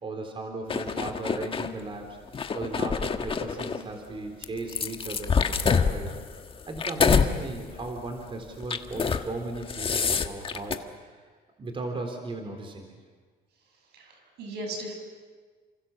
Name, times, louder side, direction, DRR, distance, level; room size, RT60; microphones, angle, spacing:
voice 1, 0.0-2.2 2.5-6.1 6.7-11.2 11.6-13.0, right 2 dB, 30° right, 4 dB, 3.7 m, -37 dB
sound 1, 0.7-1.7 2.3-3.8 4.4-7.3 7.7-8.0 8.6-9.3 9.5-10.8, left 5 dB, 30° left, 1.6 m, -26 dB
voice 2, 13.9-14.9, right 1 dB, 75° right, 4 dB, 7.1 m, -37 dB
29.0 x 26.5 x 7.3 m, 1.5 s
cardioid pair, 110°, 17 cm